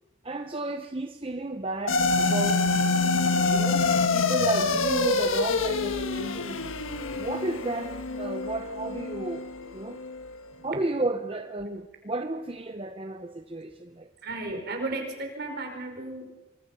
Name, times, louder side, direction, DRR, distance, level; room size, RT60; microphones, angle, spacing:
voice 1, 0.2-2.8 3.5-6.7 7.1-9.5 9.7-10.0 10.6-14.1, right 2 dB, 25° right, 0.8 m, -33 dB
sound 1, 1.9-10.4, left 3 dB, 80° left, 1.6 m, -26 dB
voice 2, 14.2-16.2, right 2 dB, 50° right, 4.8 m, -34 dB
26.5 x 24.5 x 5.7 m
head